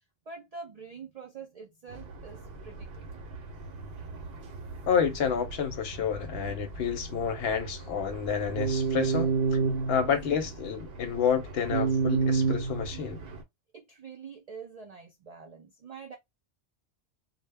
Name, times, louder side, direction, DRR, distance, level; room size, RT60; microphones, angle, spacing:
voice 1, 0.3-3.1 13.7-16.2, right 5 dB, 85° right, 0.3 m, -45 dB
sound 1, 1.9-13.4, right 4 dB, 60° right, 0.8 m, -32 dB
voice 2, 4.9-9.6 9.9-13.2, left 7 dB, 65° left, 0.8 m, -29 dB
2.1 x 2.0 x 3.3 m
omnidirectional pair, 1.2 m